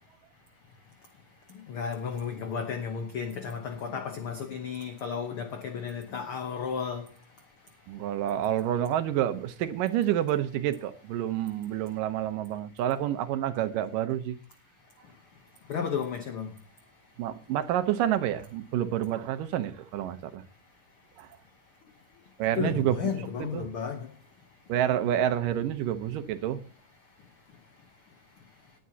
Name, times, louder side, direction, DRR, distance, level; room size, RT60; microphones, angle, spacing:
voice 1, 1.7-7.0 15.7-16.5 22.5-24.1, left 6 dB, 65° left, 1.4 m, -33 dB
voice 2, 7.9-14.4 17.2-20.4 21.2-21.3 22.4-23.7 24.7-26.6, right 11 dB, 85° right, 2.6 m, -28 dB
19.0 x 11.0 x 2.8 m
omnidirectional pair, 3.8 m